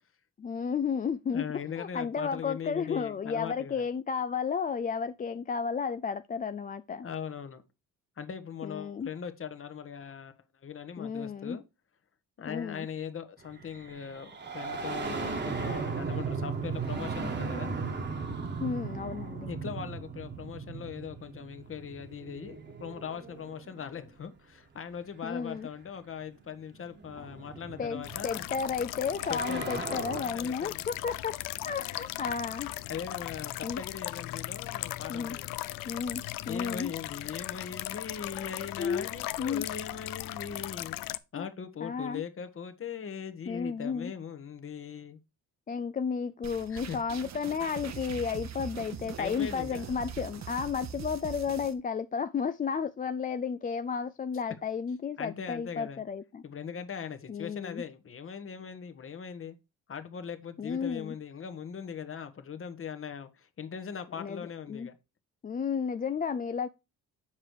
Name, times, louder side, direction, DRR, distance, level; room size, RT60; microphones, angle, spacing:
voice 1, 0.4-1.5 1.8-7.1 8.6-9.1 11.0-11.6 12.5-12.9 18.6-19.5 25.2-25.7 27.2-27.3 27.8-31.4 31.6-32.7 33.6-33.8 35.1-35.4 35.9-36.9 38.8-39.1 39.4-39.7 41.3-41.5 41.8-42.2 43.5-44.1 45.7-56.4 57.3-57.8 60.6-61.1 64.2-64.9 65.4-66.7, left 6 dB, 25° left, 0.4 m, -33 dB
voice 2, 1.3-3.9 7.0-7.6 8.2-11.6 12.4-17.7 19.5-28.4 29.3-30.8 32.9-35.5 36.5-41.0 41.3-45.2 46.7-47.0 49.2-50.0 55.2-56.0 56.4-59.6 59.9-65.0, left 7 dB, 40° left, 1.2 m, -40 dB
sound 1, 13.5-24.1 25.4-25.5 26.5-30.2, right 5 dB, 35° right, 1.4 m, -37 dB
sound 2, 28.0-41.2, left 16 dB, 90° left, 0.5 m, -38 dB
sound 3, 46.4-51.7, right 7 dB, 55° right, 1.1 m, -42 dB
7.3 x 5.0 x 4.7 m
cardioid pair, 90°, 33 cm